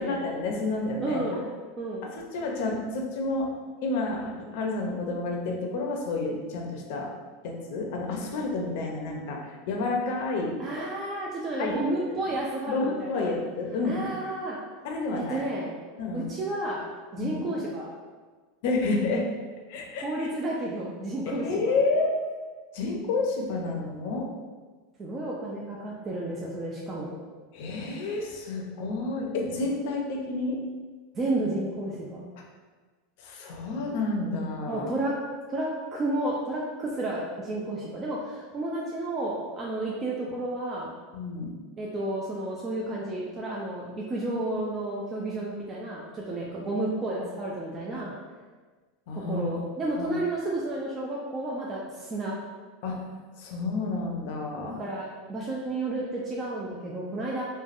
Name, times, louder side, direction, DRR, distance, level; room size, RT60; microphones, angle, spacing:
voice 1, 0.0-1.2 2.1-3.5 3.8-7.1 7.4-10.5 11.6-11.9 12.7-14.1 14.8-15.4 16.0-16.3 17.2-17.4 18.6-19.2 19.7-20.3 21.3-22.1 22.7-24.3 27.5-30.6 33.2-34.9 41.1-41.5 47.9-48.0 49.1-49.4 50.0-50.1 52.8-53.0 53.4-54.8, left 3 dB, 70° left, 1 dB, 0.5 m, -30 dB
voice 2, 1.0-1.4 1.8-2.1 10.6-13.3 13.8-14.6 15.2-15.7 16.1-16.8 17.1-17.9 20.0-21.7 25.0-27.1 31.1-32.2 34.7-35.1 35.5-40.9 41.8-48.1 49.2-52.4 54.6-57.4, right 2 dB, 30° right, -4 dB, 0.4 m, -31 dB
3.2 x 2.2 x 2.5 m, 1.4 s
supercardioid pair, 110°, 0 cm